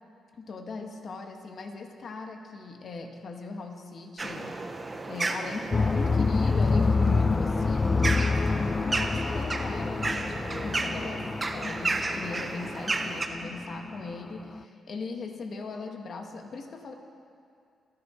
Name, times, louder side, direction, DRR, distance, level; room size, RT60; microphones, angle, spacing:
voice 1, 0.3-4.5 5.1-16.9, left 3 dB, 55° left, 3 dB, 1.7 m, -39 dB
sound 1, 4.2-13.3, right 2 dB, 25° right, 1.1 m, -33 dB
sound 2, 5.7-14.6, left 4 dB, 25° left, 0.3 m, -27 dB
28.5 x 11.0 x 4.5 m, 2.4 s
cardioid pair, 110°, 0 cm